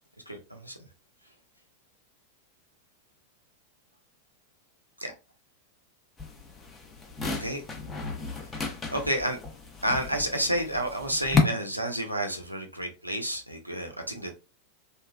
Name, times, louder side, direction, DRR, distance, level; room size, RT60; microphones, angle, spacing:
voice 1, 0.3-0.8 5.0-5.1 7.4-7.6 8.4-9.4 9.8-14.3, right 1 dB, 90° right, 3 dB, 0.6 m, -30 dB
sound 1, 6.2-11.4, left 4 dB, 20° left, 0.7 m, -32 dB
3.0 x 2.3 x 2.2 m, 0.30 s
figure-of-eight pair, 90°, 0 cm